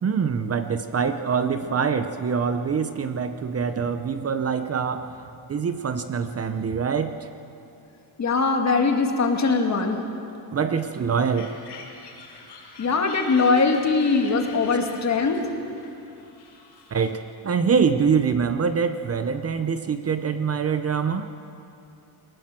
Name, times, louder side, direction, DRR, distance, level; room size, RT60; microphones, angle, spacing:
voice 1, 0.0-5.2 5.5-7.2 10.5-11.5 16.9-21.3, right 6 dB, 35° right, 9 dB, 0.8 m, -24 dB
voice 2, 8.2-10.1 12.8-15.4, left 4 dB, 40° left, 3 dB, 2.1 m, -21 dB
sound 1, 11.2-17.3, left 4 dB, 80° left, 5.2 m, -45 dB
22.0 x 19.5 x 7.6 m, 2.7 s
wide cardioid pair, 160°, 41 cm